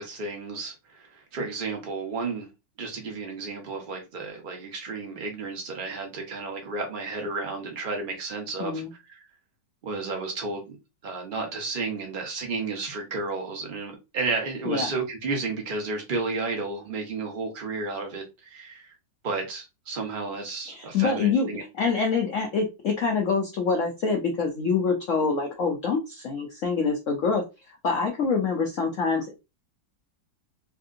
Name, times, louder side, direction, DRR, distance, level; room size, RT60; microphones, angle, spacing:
voice 1, 0.0-2.5 2.8-9.2 9.8-10.8 11.0-18.9 19.2-21.6, right 3 dB, 45° right, 0.6 m, -32 dB
voice 2, 8.6-8.9 14.7-14.9 20.7-21.5 21.8-29.3, left 5 dB, 80° left, 0.7 m, -26 dB
3.4 x 2.7 x 2.4 m
omnidirectional pair, 2.1 m